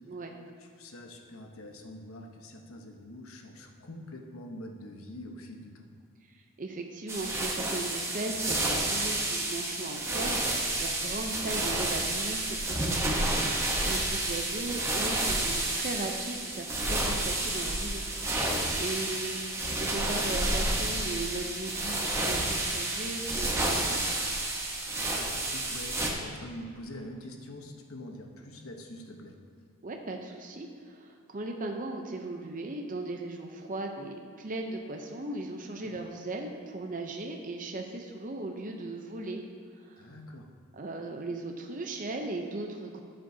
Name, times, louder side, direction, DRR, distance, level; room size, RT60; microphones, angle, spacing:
voice 1, 0.6-5.9 18.7-18.8 19.0-19.2 25.1-29.4 35.8-35.9 40.0-40.5, left 1 dB, 70° left, 3 dB, 1.0 m, -45 dB
voice 2, 6.6-13.6 13.9-18.1 18.8-24.0 29.8-39.4 39.8-40.1 40.7-43.0, right 2 dB, 40° right, 2 dB, 0.6 m, -37 dB
sound 1, 7.1-26.1, right 2 dB, 15° right, 0.9 m, -30 dB
12.5 x 7.6 x 2.8 m, 2.3 s
head